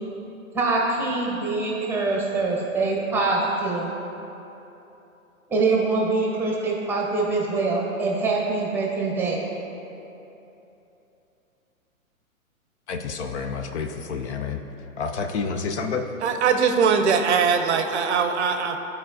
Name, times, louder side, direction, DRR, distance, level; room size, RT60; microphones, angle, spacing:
voice 1, 0.5-3.9 5.5-9.4, right 3 dB, 5° right, -2 dB, 0.9 m, -24 dB
voice 2, 12.9-14.6 15.0-16.1, left 5 dB, 50° left, 6 dB, 0.6 m, -29 dB
voice 3, 16.2-18.8, right 6 dB, 50° right, 6 dB, 0.6 m, -21 dB
12.0 x 4.5 x 2.7 m, 3.0 s
hypercardioid pair, 120°, 42 cm